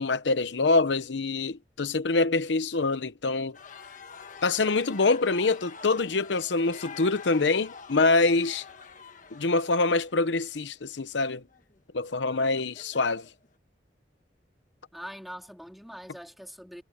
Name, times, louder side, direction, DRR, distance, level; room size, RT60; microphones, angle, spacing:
voice 1, 0.0-3.6 4.4-8.6 9.3-11.4 11.9-13.3, left 3 dB, 85° left, 0.8 m, -25 dB
sound 1, 3.5-13.5, left 5 dB, 45° left, 1.5 m, -47 dB
voice 2, 14.9-16.8, equal, ahead, 4.0 m, -43 dB
head